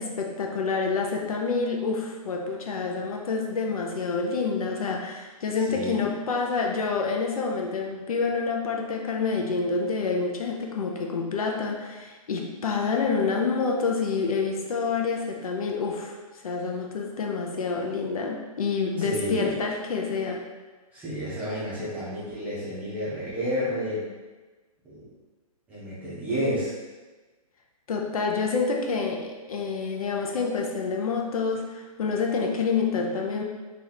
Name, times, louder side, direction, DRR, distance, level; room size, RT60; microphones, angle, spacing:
voice 1, 0.0-16.2 16.4-20.4 27.9-33.4, left 4 dB, 65° left, 1 dB, 0.7 m, -28 dB
voice 2, 5.7-6.0 19.0-19.6 20.9-24.1 24.8-25.1 25.7-26.7, equal, 5° right, -9 dB, 0.7 m, -30 dB
3.0 x 3.0 x 3.9 m, 1.3 s
hypercardioid pair, 165°, 20 cm